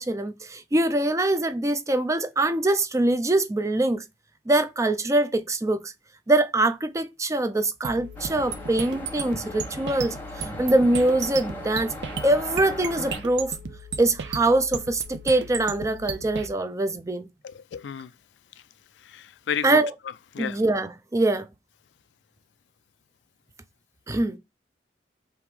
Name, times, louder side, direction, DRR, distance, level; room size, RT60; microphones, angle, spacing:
voice 1, 0.0-4.0 4.5-5.9 6.3-11.9 12.2-13.6 14.0-17.3 19.6-19.9 20.4-21.5 24.1-24.4, right 2 dB, 20° right, 0.4 m, -23 dB
sound 1, 7.8-16.5, right 5 dB, 85° right, 0.6 m, -35 dB
sound 2, 8.2-13.2, equal, 10° left, 0.9 m, -38 dB
voice 2, 17.4-18.1 19.0-19.8 20.3-20.6, left 7 dB, 90° left, 0.4 m, -32 dB
3.6 x 2.9 x 4.6 m
head